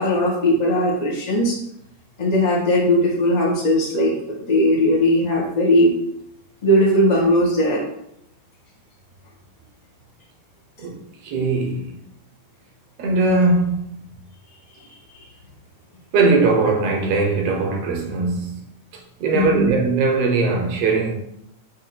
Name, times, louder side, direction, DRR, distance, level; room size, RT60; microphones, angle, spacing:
voice 1, 0.0-1.6 2.2-5.9 6.6-7.8 19.3-19.7, left 1 dB, 20° left, 1.0 m, -18 dB
voice 2, 10.8-12.0 13.0-14.0 16.1-18.7 18.9-21.1, right 3 dB, 65° right, 1.8 m, -20 dB
6.5 x 3.6 x 5.9 m
omnidirectional pair, 3.5 m